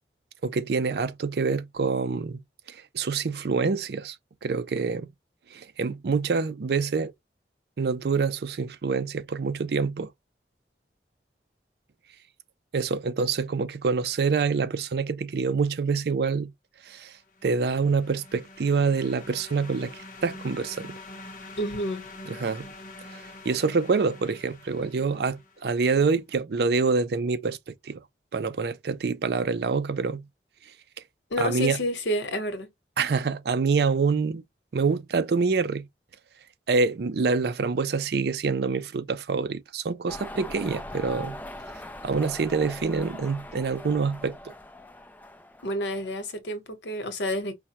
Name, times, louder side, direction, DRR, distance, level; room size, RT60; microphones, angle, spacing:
voice 1, 0.4-2.4 2.7-4.2 4.4-5.1 5.5-7.1 7.8-10.1 12.7-16.5 16.9-17.1 17.4-19.9 20.2-21.0 22.3-22.7 23.5-27.6 27.8-28.0 28.3-30.2 31.4-31.8 33.0-34.4 34.7-35.9 36.7-41.4 42.0-44.4, right 4 dB, 65° right, 0.4 m, -26 dB
sound 1, 17.2-25.8, left 2 dB, 50° left, 0.7 m, -45 dB
voice 2, 21.6-22.1 31.3-32.7 45.6-47.6, left 1 dB, 85° left, 0.9 m, -29 dB
sound 2, 40.1-46.3, left 1 dB, 10° left, 0.4 m, -41 dB
4.8 x 2.1 x 2.8 m
head